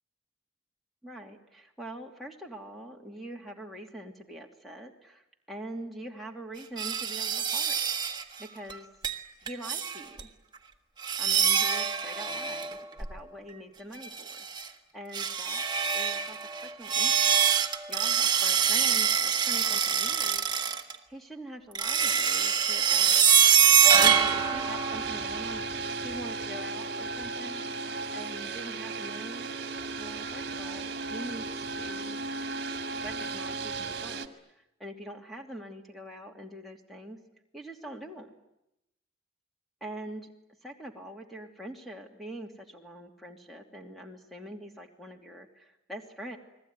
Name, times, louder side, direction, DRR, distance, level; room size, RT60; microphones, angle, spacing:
voice 1, 1.0-8.9 9.4-10.3 11.2-14.3 14.6-14.7 14.9-15.6 15.9-20.5 21.1-23.2 24.0-27.6 28.1-29.5 30.0-32.3 33.0-34.3 34.5-37.2 37.5-38.3 39.8-40.3 40.6-46.4, right 1 dB, ahead, 2 dB, 2.7 m, -44 dB
sound 1, 6.8-8.2 8.7-8.8 9.0-9.2 9.5-10.2 11.0-13.2 13.9-14.7 15.1-20.9 21.7-25.4, right 8 dB, 20° right, 1.5 m, -25 dB
sound 2, 24.0-34.3, right 3 dB, 55° right, 2.0 m, -35 dB
29.5 x 21.0 x 9.6 m, 0.87 s
head